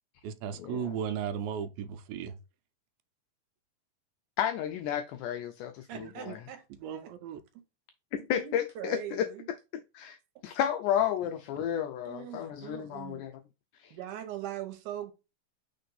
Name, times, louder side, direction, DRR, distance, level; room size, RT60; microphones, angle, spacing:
voice 1, 0.2-2.4 5.9-6.4 6.7-7.4, right 8 dB, 90° right, 2.5 m, -36 dB
voice 2, 4.4-6.4 8.3-9.3 9.9-10.2 10.4-13.3 13.8-13.9, left 10 dB, 85° left, 1.8 m, -32 dB
voice 3, 5.9-7.1 8.1-9.4 12.1-13.2 13.9-15.1, right 12 dB, 70° right, 2.3 m, -41 dB
4.5 x 4.3 x 5.4 m
omnidirectional pair, 4.1 m